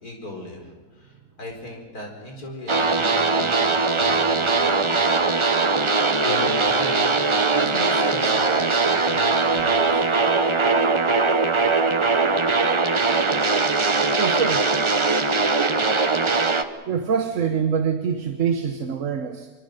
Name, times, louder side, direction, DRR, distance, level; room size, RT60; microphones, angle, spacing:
voice 1, 0.0-5.3 6.2-7.2 7.5-10.0, left 1 dB, 65° left, 1 dB, 5.0 m, -37 dB
sound 1, 2.7-16.6, right 3 dB, 25° right, 0.6 m, -20 dB
voice 2, 14.2-14.7 16.9-19.5, right 6 dB, 55° right, 6 dB, 1.4 m, -24 dB
26.5 x 23.5 x 5.3 m, 1.4 s
omnidirectional pair, 1.7 m